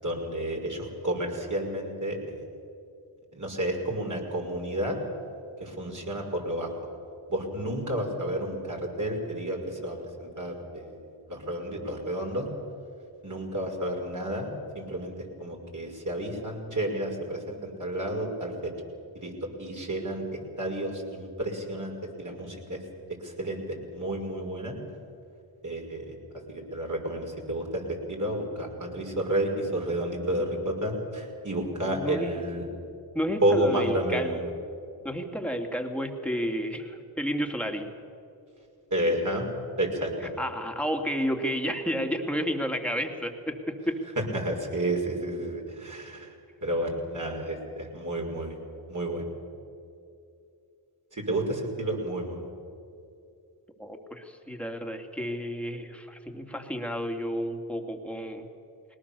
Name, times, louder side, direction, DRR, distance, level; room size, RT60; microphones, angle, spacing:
voice 1, 0.0-2.4 3.3-5.0 5.6-6.7 7.3-11.0 11.3-12.5 13.2-18.7 19.2-19.3 19.6-20.2 20.6-22.8 23.2-24.7 25.6-26.1 26.5-32.6 33.4-34.4 38.9-39.5 39.8-40.3 44.2-46.3 46.6-48.6 48.9-49.3 51.1-52.5, right 1 dB, 40° right, 0 dB, 5.7 m, -31 dB
voice 2, 31.8-32.3 33.1-34.4 35.0-37.9 40.4-44.0 53.8-58.4, equal, 5° left, 4 dB, 2.9 m, -31 dB
21.0 x 19.0 x 7.2 m, 2.5 s
supercardioid pair, 40°, 47 cm